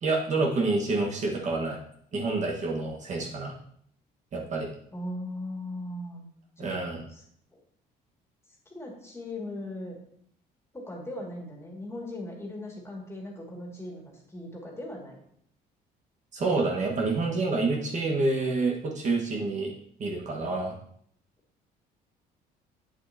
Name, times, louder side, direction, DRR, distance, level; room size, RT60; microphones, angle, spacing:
voice 1, 0.0-1.8 2.1-3.5 4.3-4.7 6.6-7.0 16.3-19.7 20.0-20.7, right 3 dB, 45° right, -1 dB, 1.6 m, -28 dB
voice 2, 4.9-6.2 6.6-7.2 8.7-10.0 10.7-15.2, left 1 dB, 15° left, -1 dB, 2.3 m, -39 dB
8.1 x 7.9 x 2.9 m, 0.66 s
cardioid pair, 110°, 17 cm